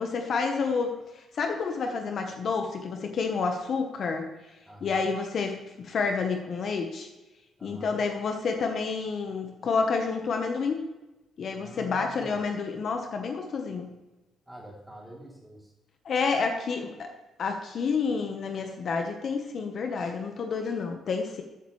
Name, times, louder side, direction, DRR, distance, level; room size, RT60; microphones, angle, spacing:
voice 1, 0.0-4.3 4.8-7.1 7.6-10.8 11.4-13.9 16.0-17.1 17.4-21.4, left 5 dB, 55° left, 4 dB, 1.2 m, -29 dB
voice 2, 4.7-5.1 7.6-8.0 11.5-12.4 14.5-15.7, right 1 dB, 5° right, -3 dB, 3.3 m, -46 dB
14.0 x 8.4 x 3.3 m, 1.1 s
cardioid pair, 90°, 0 cm